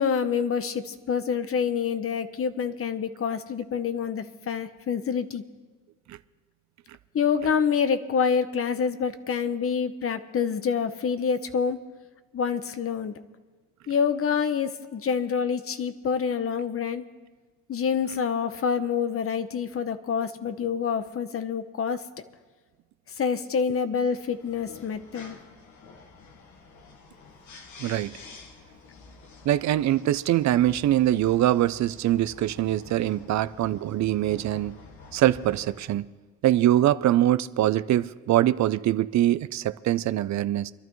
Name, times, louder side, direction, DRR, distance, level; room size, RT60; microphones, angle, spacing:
voice 1, 0.0-5.4 7.1-11.8 12.3-13.1 13.9-17.0 17.7-22.0 23.2-25.4, left 6 dB, 50° left, 1.0 m, -27 dB
sound 1, 24.1-36.0, left 4 dB, 70° left, 1.7 m, -49 dB
voice 2, 27.8-28.2 29.4-34.8 35.1-36.1 36.4-40.7, right 13 dB, 65° right, 0.5 m, -23 dB
25.5 x 12.0 x 3.1 m
cardioid pair, 90°, 30 cm